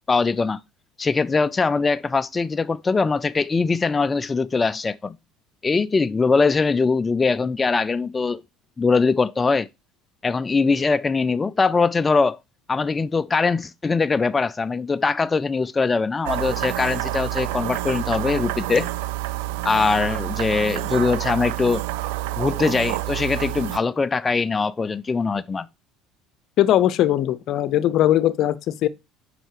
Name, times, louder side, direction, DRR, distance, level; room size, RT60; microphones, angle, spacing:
voice 1, 0.1-0.6 1.0-5.2 5.6-8.4 8.8-9.7 10.2-12.4 12.7-18.9 19.6-21.8 22.4-25.7, left 4 dB, 25° left, 0.4 m, -22 dB
sound 1, 16.3-23.8, right 16 dB, 85° right, 0.5 m, -28 dB
voice 2, 26.6-28.9, left 12 dB, 60° left, 0.7 m, -19 dB
7.6 x 5.6 x 4.8 m
supercardioid pair, 85°, 0 cm